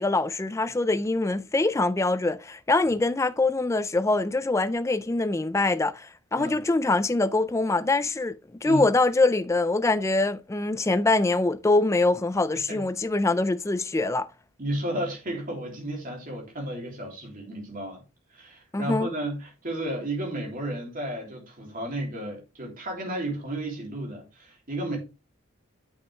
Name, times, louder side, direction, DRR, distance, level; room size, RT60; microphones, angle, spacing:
voice 1, 0.0-14.3 18.7-19.1, left 2 dB, 15° left, 0.3 m, -24 dB
voice 2, 14.6-18.0 18.3-25.0, right 1 dB, 40° right, 3.0 m, -33 dB
8.5 x 6.2 x 3.3 m
head